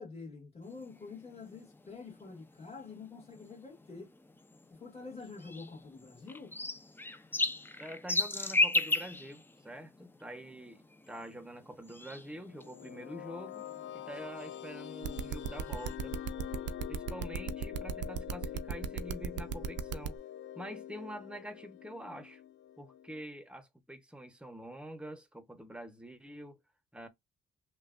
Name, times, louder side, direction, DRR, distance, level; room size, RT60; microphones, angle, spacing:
voice 1, 0.0-4.1 4.7-6.5, left 4 dB, 30° left, 1.7 m, -47 dB
sound 1, 0.6-16.0, left 2 dB, 10° left, 0.4 m, -38 dB
voice 2, 7.8-13.7 13.9-16.1 16.9-20.2 20.5-22.4 22.8-26.6 26.9-27.1, equal, 5° right, 0.8 m, -46 dB
sound 2, 12.4-23.2, left 11 dB, 65° left, 0.4 m, -45 dB
sound 3, 15.0-20.1, right 8 dB, 65° right, 0.5 m, -36 dB
3.1 x 2.3 x 2.4 m
cardioid pair, 90°, 20 cm